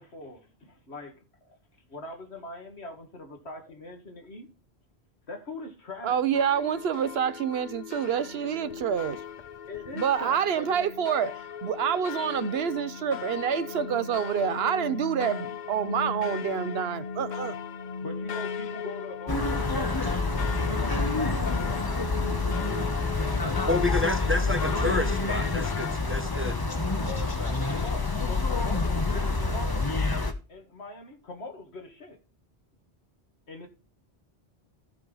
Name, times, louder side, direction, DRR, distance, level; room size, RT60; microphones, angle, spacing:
voice 1, 0.0-1.6 1.9-4.5 5.3-6.2 9.7-10.9 18.0-22.3 22.5-23.5 26.9-29.9 30.5-32.2 33.5-33.7, left 2 dB, 80° left, 2.2 m, -42 dB
voice 2, 6.0-9.2 9.9-17.6, right 8 dB, 70° right, 0.9 m, -27 dB
sound 1, 6.3-26.0, left 6 dB, 50° left, 0.7 m, -37 dB
sound 2, 19.3-30.3, left 3 dB, 20° left, 1.0 m, -27 dB
voice 3, 23.7-26.6, left 2 dB, 15° right, 0.8 m, -29 dB
14.0 x 5.4 x 3.9 m
omnidirectional pair, 1.1 m